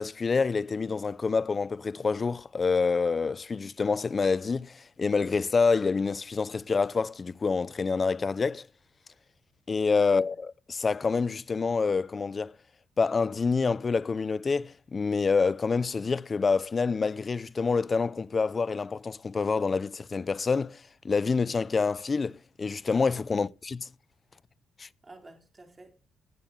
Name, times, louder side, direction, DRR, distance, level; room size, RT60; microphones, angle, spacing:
voice 1, 0.0-8.7 9.7-12.5 13.0-23.8 24.8-24.9, left 4 dB, 35° left, 0.8 m, -27 dB
voice 2, 10.0-10.4 23.3-23.5 25.0-26.1, right 2 dB, 20° right, 4.5 m, -52 dB
19.0 x 9.2 x 5.6 m
cardioid pair, 90°, 0 cm